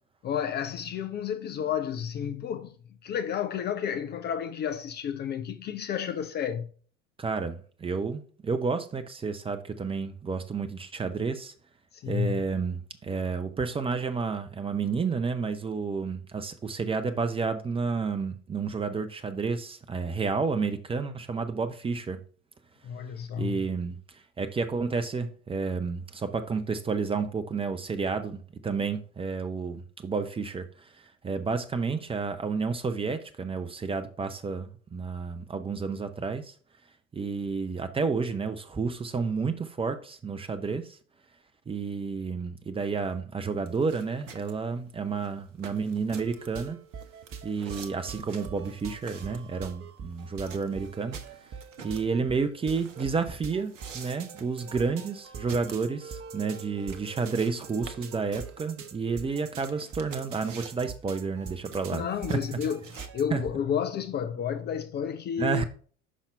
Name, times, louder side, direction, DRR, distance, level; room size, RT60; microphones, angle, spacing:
voice 1, 0.2-2.7 3.0-6.7 11.9-12.4 22.8-23.6 61.9-65.7, left 8 dB, 25° left, 0.5 m, -31 dB
voice 2, 7.2-11.5 12.1-22.2 23.4-36.5 37.1-41.0 41.7-46.8 47.4-51.5 51.8-62.0 62.3-62.4 63.3-63.4 65.4-65.7, right 4 dB, 15° right, 0.7 m, -31 dB
sound 1, 43.7-63.1, right 6 dB, 75° right, 0.8 m, -48 dB
sound 2, 46.2-63.3, right 6 dB, 35° right, 0.9 m, -44 dB
6.2 x 5.7 x 3.3 m
figure-of-eight pair, 70°, 37 cm